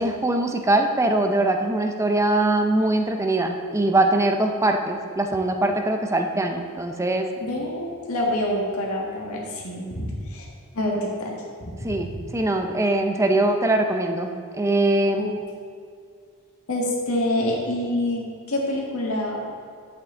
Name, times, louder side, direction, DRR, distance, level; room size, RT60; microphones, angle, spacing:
voice 1, 0.0-7.3 11.8-15.3, right 2 dB, 15° right, 4 dB, 0.6 m, -22 dB
voice 2, 7.4-10.4 10.7-11.4 11.6-12.0 15.2-15.3 16.7-19.4, left 1 dB, 75° left, -3 dB, 1.8 m, -26 dB
9.6 x 8.0 x 3.8 m, 2.2 s
head